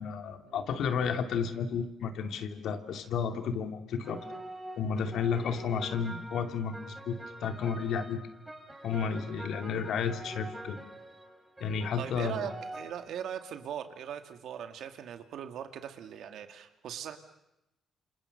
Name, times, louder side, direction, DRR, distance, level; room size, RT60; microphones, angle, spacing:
voice 1, 0.0-4.2 4.8-8.2 8.8-10.8 11.6-12.5, left 6 dB, 75° left, 7 dB, 2.6 m, -32 dB
sound 1, 4.0-12.9, right 1 dB, 15° right, 5.1 m, -45 dB
voice 2, 12.0-17.2, right 9 dB, 75° right, 8 dB, 2.2 m, -40 dB
28.0 x 27.0 x 6.6 m, 0.91 s
cardioid pair, 90°, 0 cm